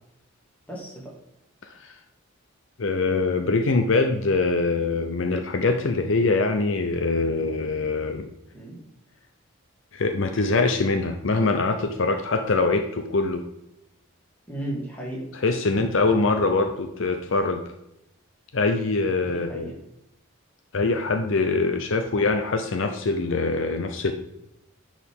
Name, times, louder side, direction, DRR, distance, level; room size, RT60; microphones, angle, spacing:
voice 1, 0.7-1.1 8.5-8.8 14.5-15.2 19.2-19.8, right 1 dB, 10° left, -4 dB, 2.3 m, -34 dB
voice 2, 2.8-8.3 9.9-13.4 15.4-17.6 18.5-19.6 20.7-24.1, left 3 dB, 65° left, 6 dB, 0.6 m, -23 dB
10.0 x 4.9 x 3.6 m, 0.84 s
head